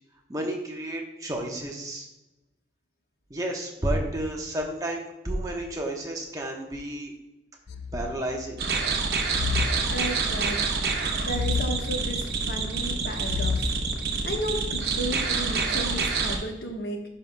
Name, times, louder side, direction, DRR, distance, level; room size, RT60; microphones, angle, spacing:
voice 1, 0.3-2.1 3.3-7.1 7.9-8.6, right 1 dB, 20° right, 0 dB, 1.0 m, -31 dB
sound 1, 7.7-8.6 9.3-10.6 11.3-12.6 13.2-14.4, left 5 dB, 90° left, 0.5 m, -32 dB
sound 2, 8.6-16.4, right 4 dB, 65° right, 0.9 m, -27 dB
voice 2, 9.9-13.7 14.2-17.0, equal, 60° left, 2 dB, 1.2 m, -34 dB
11.0 x 5.5 x 2.2 m, 0.97 s
head